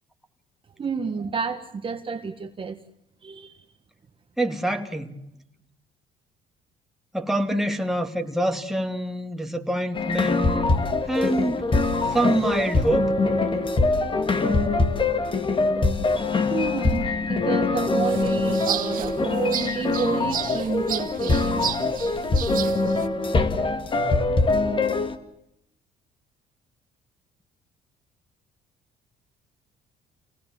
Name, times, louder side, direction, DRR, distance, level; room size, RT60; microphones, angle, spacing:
voice 1, 0.8-2.8 3.2-3.5 16.4-21.7, right 6 dB, 30° right, 1.5 m, -30 dB
voice 2, 4.4-5.1 7.1-10.7 11.1-11.6 12.1-13.1, right 1 dB, ahead, 2.4 m, -25 dB
sound 1, 9.9-25.2, left 3 dB, 30° left, 2.1 m, -23 dB
sound 2, 18.0-23.1, right 10 dB, 55° right, 2.3 m, -33 dB
28.5 x 19.0 x 7.6 m
cardioid pair, 110°, 17 cm